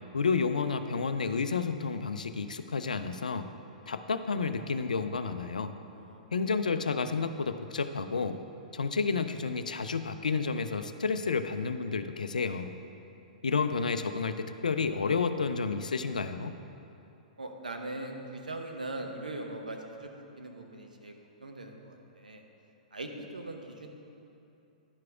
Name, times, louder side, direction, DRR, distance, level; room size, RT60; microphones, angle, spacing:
voice 1, 0.1-3.5 3.9-5.7 6.3-8.4 8.7-12.7 13.4-16.6, left 5 dB, 80° left, 9 dB, 0.4 m, -30 dB
voice 2, 17.4-21.1 21.4-22.4 22.9-23.9, right 2 dB, 85° right, 3 dB, 0.8 m, -41 dB
11.0 x 4.7 x 4.8 m, 2.8 s
figure-of-eight pair, 110°, 4 cm